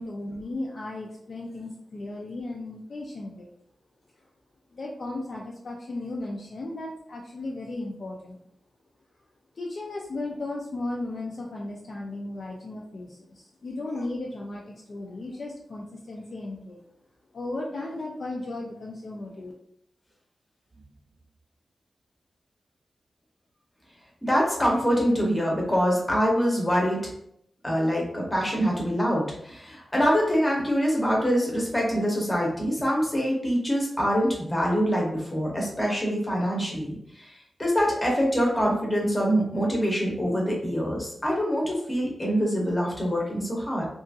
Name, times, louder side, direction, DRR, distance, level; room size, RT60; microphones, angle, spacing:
voice 1, 0.0-3.5 4.7-8.4 9.6-16.8 17.3-19.5, left 2 dB, 45° left, -2 dB, 0.4 m, -35 dB
voice 2, 24.2-27.0 27.6-37.3 37.6-43.9, equal, 15° left, -3 dB, 0.7 m, -25 dB
2.7 x 2.4 x 2.6 m, 0.72 s
wide cardioid pair, 160°, 0 cm